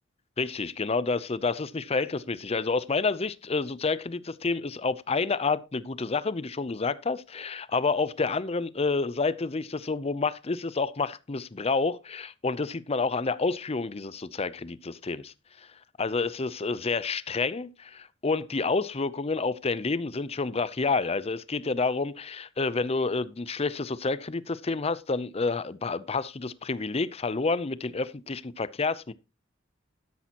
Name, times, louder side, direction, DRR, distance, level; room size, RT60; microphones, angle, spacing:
voice 1, 0.4-15.3 16.0-29.1, left 4 dB, 30° left, 0.6 m, -29 dB
12.5 x 10.0 x 3.0 m
head